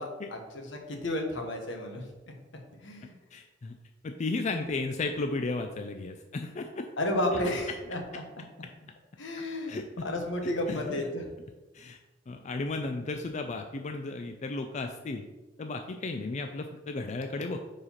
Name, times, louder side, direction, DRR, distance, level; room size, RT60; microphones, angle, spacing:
voice 1, 0.0-2.3 2.8-3.1 7.0-8.2 9.2-9.8 10.0-11.3, left 1 dB, 75° left, 3 dB, 1.3 m, -32 dB
voice 2, 3.3-3.8 4.0-6.9 9.7-9.9 10.7-10.9 11.7-12.0 12.3-15.2 15.6-17.6, left 3 dB, 40° left, 6 dB, 0.4 m, -34 dB
4.8 x 4.8 x 5.7 m, 1.1 s
head